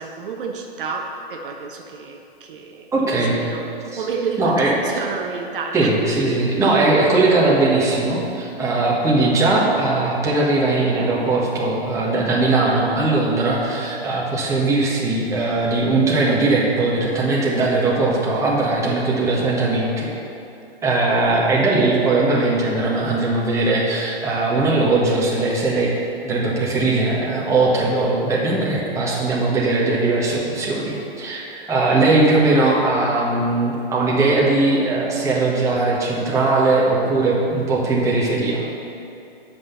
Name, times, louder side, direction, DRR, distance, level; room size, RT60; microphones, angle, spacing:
voice 1, 0.0-6.0 6.2-6.4 21.3-21.4, right 5 dB, 55° right, 2 dB, 1.0 m, -30 dB
voice 2, 2.9-3.3 3.9-4.0 4.4-4.7 5.7-20.1 20.8-25.9 26.2-38.7, right 2 dB, 10° right, -5 dB, 1.4 m, -19 dB
7.7 x 6.0 x 6.9 m, 2.7 s
hypercardioid pair, 145°, 31 cm